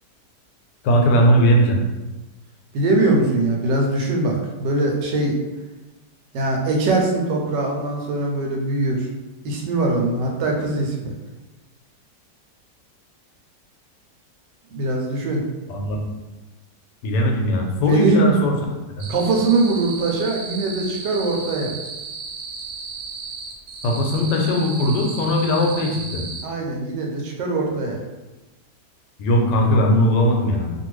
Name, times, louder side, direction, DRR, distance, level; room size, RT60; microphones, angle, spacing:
voice 1, 0.8-1.8 15.7-16.1 17.0-18.5 18.9-19.0 23.8-26.3 29.2-30.7, equal, 85° left, 1 dB, 1.2 m, -19 dB
voice 2, 2.7-5.4 6.3-9.1 9.4-11.1 14.7-15.4 17.8-18.3 19.1-21.7 26.4-28.0, right 2 dB, 85° right, 0 dB, 1.3 m, -22 dB
sound 1, 19.0-26.4, right 4 dB, 70° right, 1.0 m, -34 dB
2.8 x 2.6 x 3.1 m, 1.1 s
omnidirectional pair, 1.8 m